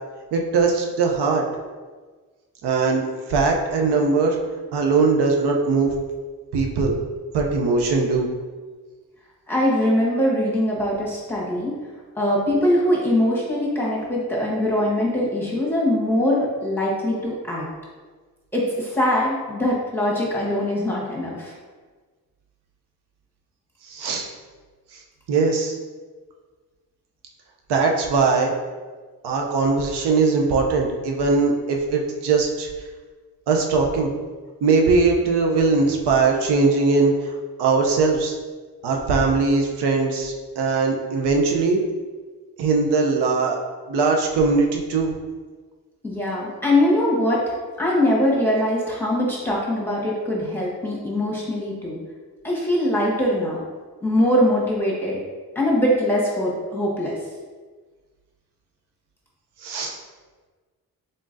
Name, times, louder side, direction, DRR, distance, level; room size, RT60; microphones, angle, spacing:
voice 1, 0.3-1.4 2.6-4.4 4.7-6.0 6.5-7.0 7.3-8.3 23.9-24.3 24.9-25.0 25.3-25.8 27.7-28.5 29.2-32.7 33.5-34.1 34.6-37.3 37.6-38.3 38.8-41.8 42.6-43.6 43.9-45.1 59.6-59.9, right 4 dB, 85° right, 1 dB, 0.7 m, -20 dB
voice 2, 9.5-11.7 12.2-17.6 18.5-21.5 46.0-47.4 47.8-52.0 52.4-53.6 54.0-55.2 55.5-57.1, left 1 dB, 5° left, -5 dB, 1.5 m, -22 dB
3.8 x 3.7 x 2.6 m, 1.4 s
cardioid pair, 55°, 39 cm